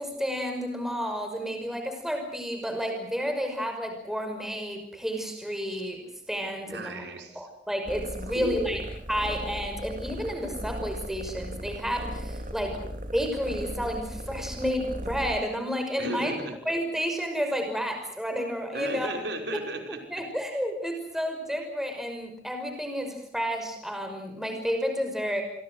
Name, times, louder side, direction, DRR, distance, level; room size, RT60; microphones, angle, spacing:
voice 1, 0.0-6.0 6.3-7.0 7.4-8.8 9.1-12.8 13.1-16.3 16.7-19.1 20.1-25.4, equal, ahead, 5 dB, 5.8 m, -31 dB
voice 2, 6.7-7.5 8.3-8.8 16.0-16.6 18.7-20.0, right 1 dB, 85° right, 4 dB, 5.4 m, -35 dB
sound 1, 7.9-15.4, equal, 45° right, 3.0 m, -37 dB
28.5 x 24.0 x 6.5 m, 0.68 s
head